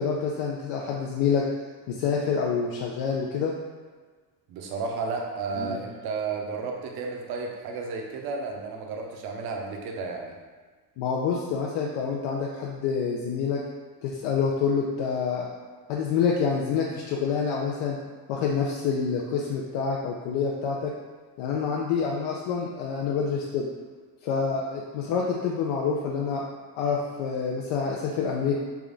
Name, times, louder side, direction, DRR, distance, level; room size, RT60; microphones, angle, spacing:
voice 1, 0.0-1.4 1.9-3.5 5.6-5.8 11.0-13.6 14.0-15.5 15.9-18.0 18.3-20.9 21.4-23.7 24.2-26.4 26.7-28.5, left 6 dB, 70° left, -2 dB, 0.5 m, -27 dB
voice 2, 4.5-10.4, right 4 dB, 50° right, 1 dB, 0.6 m, -32 dB
3.5 x 2.3 x 3.7 m, 1.5 s
cardioid pair, 150°, 48 cm